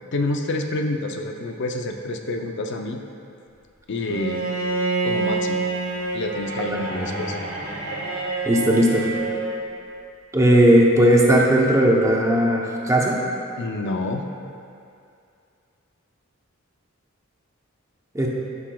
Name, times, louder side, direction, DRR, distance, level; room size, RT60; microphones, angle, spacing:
voice 1, 0.1-3.0 3.9-4.4 5.0-5.6 6.1-7.4 13.6-14.3, left 2 dB, 55° left, 4 dB, 0.5 m, -27 dB
Bowed string instrument, 4.1-9.6, right 3 dB, 80° right, 1.6 m, -27 dB
voice 2, 8.5-9.1 10.3-13.2 18.1-18.3, right 1 dB, 15° right, -2 dB, 0.7 m, -17 dB
12.5 x 5.8 x 2.3 m, 2.5 s
head